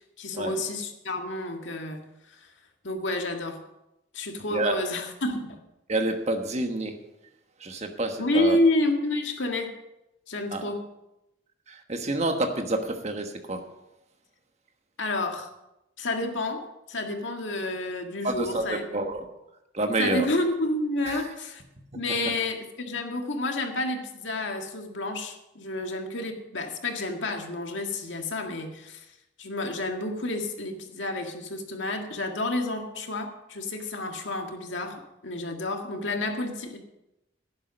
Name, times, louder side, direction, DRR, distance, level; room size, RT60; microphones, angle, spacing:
voice 1, 0.2-2.4 2.8-3.6 4.1-5.6 8.2-9.7 10.3-10.8 15.0-15.5 16.0-16.6 16.9-18.9 20.0-21.6 22.0-29.1 29.4-36.8, left 2 dB, 90° left, 3 dB, 1.8 m, -29 dB
voice 2, 4.5-4.9 5.9-7.0 7.6-8.6 10.5-10.6 11.7-13.7 18.2-19.2 19.7-20.3 21.1-21.3 22.2-22.4, right 2 dB, 35° right, 5 dB, 1.3 m, -28 dB
11.0 x 10.5 x 5.3 m, 0.91 s
head